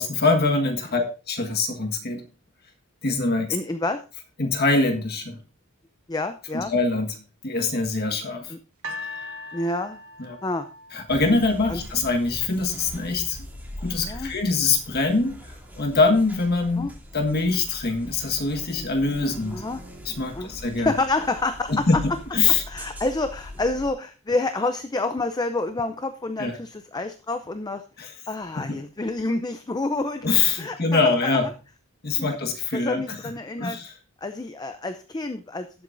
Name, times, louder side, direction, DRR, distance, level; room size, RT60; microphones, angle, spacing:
voice 1, 0.0-2.3 3.0-3.6 4.4-5.4 6.5-7.2 7.4-8.5 10.2-10.4 10.9-13.4 13.8-15.4 15.8-16.9 17.1-19.6 20.0-20.9 21.7-22.0 22.3-22.6 26.4-26.5 28.0-28.1 28.6-28.8 30.2-31.5 32.0-33.2 33.6-33.9, left 3 dB, 45° left, 3 dB, 1.5 m, -23 dB
voice 2, 3.5-4.0 6.1-6.7 8.5-8.6 9.5-10.0 10.4-10.7 11.7-11.8 14.0-14.3 16.8-16.9 19.5-19.8 20.3-20.5 20.8-22.0 22.7-27.8 28.3-30.3 30.6-31.4 32.2-32.4 32.7-33.8 34.2-35.8, left 2 dB, 20° left, 8 dB, 0.5 m, -28 dB
sound 1, 8.8-12.0 12.8-12.9, left 2 dB, 70° right, 1.2 m, -39 dB
sound 2, 11.1-23.9, equal, 10° right, 2.9 m, -41 dB
18.0 x 7.9 x 2.6 m, 0.34 s
head